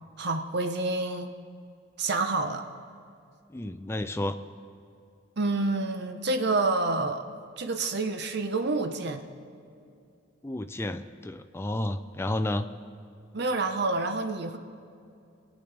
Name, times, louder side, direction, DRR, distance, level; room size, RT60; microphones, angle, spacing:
voice 1, 0.2-1.3 2.0-2.6 5.4-7.3 7.6-9.2 13.3-14.6, right 3 dB, 60° right, 7 dB, 0.8 m, -28 dB
voice 2, 3.5-4.4 10.4-12.7, left 1 dB, 15° left, 8 dB, 0.4 m, -31 dB
23.5 x 8.6 x 3.4 m, 2.5 s
head